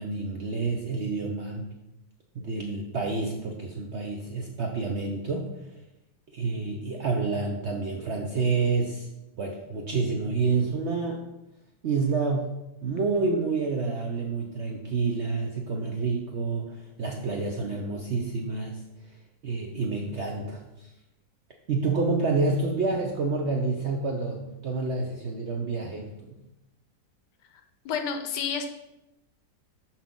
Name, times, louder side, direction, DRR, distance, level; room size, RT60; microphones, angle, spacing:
voice 1, 0.0-1.7 2.3-5.7 6.3-9.1 9.4-11.2 11.8-12.6 12.8-18.8 19.1-19.2 19.4-20.9 21.7-26.4, right 4 dB, 65° right, 1 dB, 0.7 m, -28 dB
voice 2, 27.8-28.7, left 6 dB, 80° left, 6 dB, 1.3 m, -29 dB
5.8 x 5.8 x 3.7 m, 0.92 s
omnidirectional pair, 1.9 m